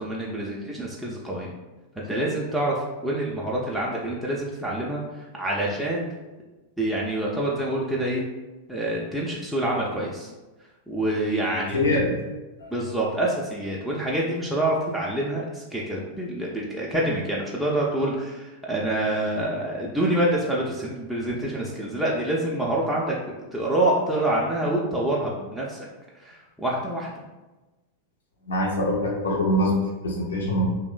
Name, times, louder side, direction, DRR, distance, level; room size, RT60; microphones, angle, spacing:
voice 1, 0.0-1.5 2.0-5.0 5.4-6.1 6.8-8.2 8.7-10.3 10.9-11.9 12.7-23.1 23.5-25.8 26.2-27.1, right 1 dB, ahead, -5 dB, 0.3 m, -26 dB
voice 2, 11.7-12.1 12.6-12.7 28.5-30.6, left 1 dB, 70° left, -2 dB, 0.5 m, -23 dB
2.9 x 2.0 x 2.3 m, 1.1 s
figure-of-eight pair, 90°, 0 cm